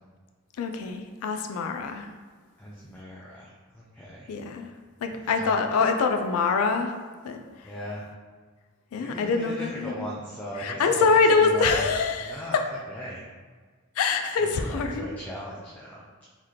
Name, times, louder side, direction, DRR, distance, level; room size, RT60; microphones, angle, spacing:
voice 1, 0.6-2.1 4.3-4.7 5.0-6.9 7.2-7.4 8.9-10.1 10.6-12.7 14.0-15.1, left 4 dB, 85° left, 6 dB, 0.4 m, -24 dB
voice 2, 2.6-4.3 5.4-5.8 7.6-8.1 9.0-11.8 12.2-12.6 12.9-13.2 14.4-16.0, equal, 10° left, -6 dB, 0.4 m, -38 dB
3.9 x 2.8 x 3.1 m, 1.5 s
head